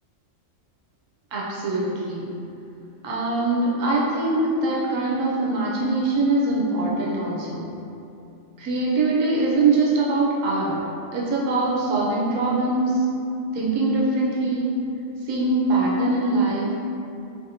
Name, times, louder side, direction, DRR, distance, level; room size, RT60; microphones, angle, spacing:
voice 1, 1.3-2.3 3.0-7.7 8.6-10.8 11.1-13.1 13.5-14.7 15.2-16.7, right 2 dB, 85° right, -5 dB, 1.0 m, -22 dB
2.8 x 2.6 x 2.8 m, 2.7 s
omnidirectional pair, 1.3 m